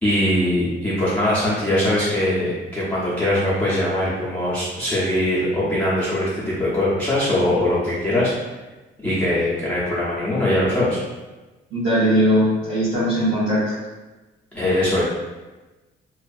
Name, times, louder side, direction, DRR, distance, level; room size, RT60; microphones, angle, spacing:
voice 1, 0.0-8.3 9.0-11.0 14.5-15.0, left 1 dB, 5° left, -11 dB, 0.7 m, -21 dB
voice 2, 11.7-13.7, equal, 85° right, -11 dB, 0.9 m, -19 dB
2.5 x 2.4 x 2.4 m, 1.2 s
cardioid pair, 90°, 20 cm